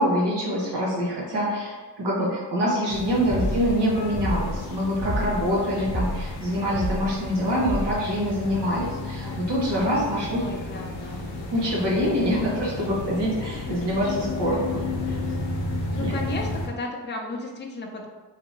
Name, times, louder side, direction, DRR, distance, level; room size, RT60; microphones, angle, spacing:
voice 1, 0.0-10.4 11.5-14.8 15.1-15.2 16.0-16.2, equal, 70° right, -6 dB, 1.3 m, -25 dB
sound 1, 2.9-16.7, left 2 dB, 80° left, 0.8 m, -33 dB
voice 2, 3.2-3.5 10.3-11.2 15.9-18.1, left 2 dB, 25° left, 0 dB, 0.4 m, -34 dB
sound 2, 3.3-3.8 4.1-4.6 5.0-5.5 5.8-6.3 6.7-7.1 7.6-8.0, equal, 35° right, 0.8 m, -29 dB
3.3 x 2.7 x 2.8 m, 1.3 s
wide cardioid pair, 155°, 43 cm